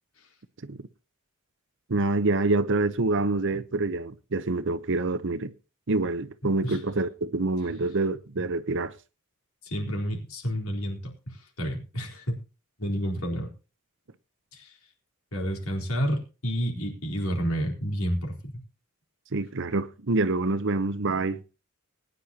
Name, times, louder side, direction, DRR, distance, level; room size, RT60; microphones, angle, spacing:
voice 1, 1.9-5.5 5.9-8.9 19.3-21.4, right 2 dB, 60° right, 0.9 m, -26 dB
voice 2, 9.6-12.4 12.8-13.5 14.5-14.7 15.3-18.6, equal, 70° left, 4.2 m, -30 dB
20.0 x 10.0 x 2.9 m
head